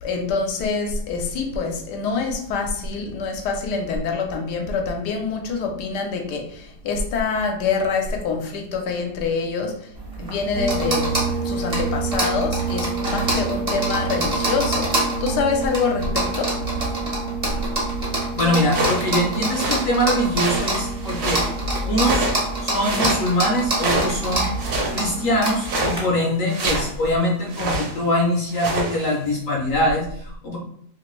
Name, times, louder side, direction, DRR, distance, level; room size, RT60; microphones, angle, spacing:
voice 1, 0.0-9.9 10.2-11.1 11.4-16.5, left 4 dB, 90° left, 2 dB, 1.2 m, -25 dB
sound 1, 10.0-26.0, right 1 dB, 35° right, 0.7 m, -27 dB
sound 2, 10.5-25.3, right 4 dB, 55° right, 1.0 m, -30 dB
voice 2, 18.4-21.4 21.8-22.3 22.6-24.5 24.9-30.6, left 1 dB, 65° left, -1 dB, 0.8 m, -23 dB
sound 3, 18.7-19.0 19.4-19.9 20.3-21.5 22.0-22.5 22.8-23.2 23.7-24.2 24.6-25.0 25.6-26.0 26.5-26.9 27.5-27.9 28.4-29.1, right 1 dB, 70° right, 1.3 m, -25 dB
3.1 x 2.5 x 3.0 m, 0.65 s
omnidirectional pair, 1.8 m